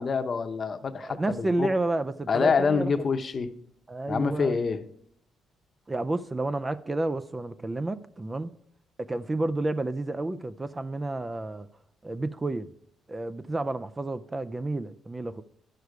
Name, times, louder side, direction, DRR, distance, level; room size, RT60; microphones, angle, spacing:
voice 1, 0.0-1.7 2.3-3.5 4.1-4.8, left 5 dB, 45° left, 0.8 m, -26 dB
voice 2, 1.0-3.2 3.9-4.6 5.9-8.5 9.0-11.7 12.0-12.7 13.1-15.4, right 2 dB, 20° right, 0.4 m, -30 dB
11.0 x 6.6 x 4.7 m
cardioid pair, 90°, 0 cm